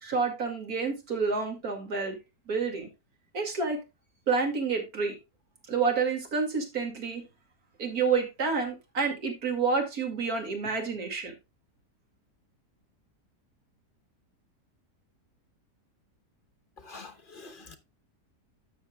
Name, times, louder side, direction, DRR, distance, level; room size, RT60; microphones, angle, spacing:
voice 1, 0.0-2.2 2.5-2.9 3.3-3.8 4.3-5.1 5.7-7.2 7.8-11.3, right 5 dB, 60° right, 2.7 m, -29 dB
voice 2, 16.9-17.8, left 3 dB, 35° left, 1.0 m, -46 dB
12.5 x 7.3 x 2.3 m
omnidirectional pair, 1.8 m